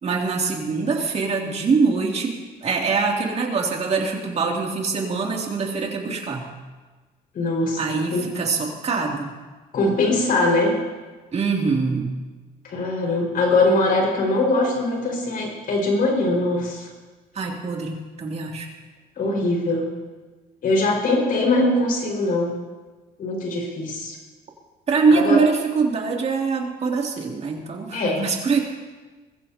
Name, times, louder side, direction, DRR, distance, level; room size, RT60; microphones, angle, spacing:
voice 1, 0.0-2.3 2.6-6.5 7.8-9.3 11.3-12.1 17.3-18.7 24.9-28.6, right 4 dB, 40° right, 0 dB, 2.9 m, -23 dB
voice 2, 7.3-7.8 8.1-8.3 9.7-10.8 12.6-16.9 19.2-19.9 20.6-22.5 23.2-24.2 25.1-25.4 27.9-28.3, left 2 dB, 60° left, 0 dB, 5.4 m, -21 dB
22.0 x 14.5 x 2.9 m, 1.3 s
cardioid pair, 110°, 17 cm